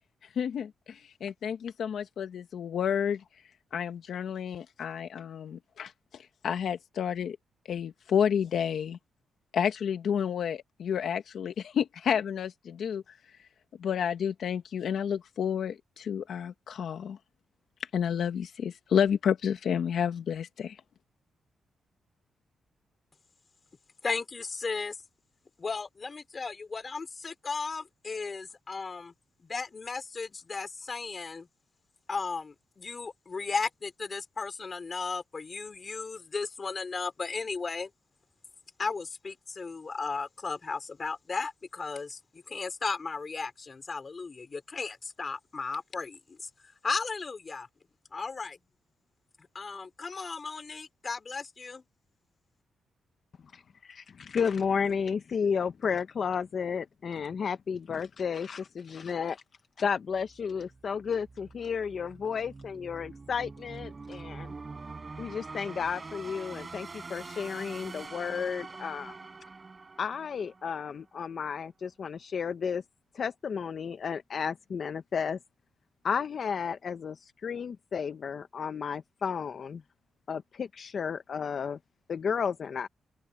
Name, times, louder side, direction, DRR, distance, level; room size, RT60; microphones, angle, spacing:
voice 1, 0.3-3.2 3.7-7.4 7.7-9.0 9.5-13.2 13.8-17.2 17.8-20.8, left 8 dB, 70° left, 1.3 m, -30 dB
voice 2, 24.0-25.0 25.6-29.1 29.4-31.5 32.1-37.9 38.8-46.5 46.8-47.7 48.1-48.6 49.5-51.8, left 4 dB, 35° left, 4.6 m, -35 dB
voice 3, 53.5-59.4 59.8-64.5 65.2-69.2 70.0-72.8 73.1-75.4 76.0-79.8 80.3-81.8 82.1-82.9, left 6 dB, 50° left, 0.7 m, -32 dB
sound 1, 60.1-71.1, right 4 dB, 30° right, 4.6 m, -45 dB
open air
cardioid pair, 110°, 0 cm